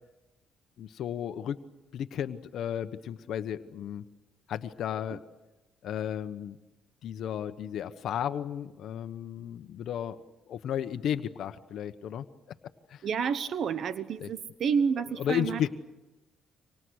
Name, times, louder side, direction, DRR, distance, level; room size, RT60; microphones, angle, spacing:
voice 1, 0.8-1.6 1.9-4.0 4.5-5.2 5.8-6.6 7.0-10.2 10.5-12.3 12.9-13.1 14.2-14.3 15.2-15.7, left 9 dB, 75° left, 10 dB, 1.1 m, -33 dB
voice 2, 13.0-15.7, right 6 dB, 65° right, 12 dB, 1.1 m, -29 dB
29.5 x 25.5 x 6.4 m, 1.0 s
cardioid pair, 90°, 0 cm